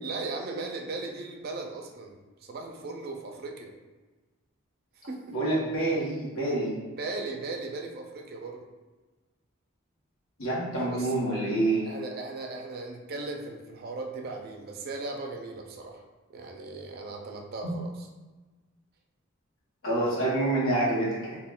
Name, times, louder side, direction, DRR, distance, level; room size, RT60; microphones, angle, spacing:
voice 1, 0.0-3.7 5.1-5.4 7.0-8.6 10.8-11.1 11.8-16.0 16.3-18.1, right 3 dB, 45° right, 2 dB, 0.4 m, -37 dB
voice 2, 5.3-6.7 10.4-11.9 17.6-17.7 19.8-21.4, right 2 dB, 75° left, -7 dB, 0.8 m, -27 dB
2.3 x 2.2 x 3.6 m, 1.2 s
head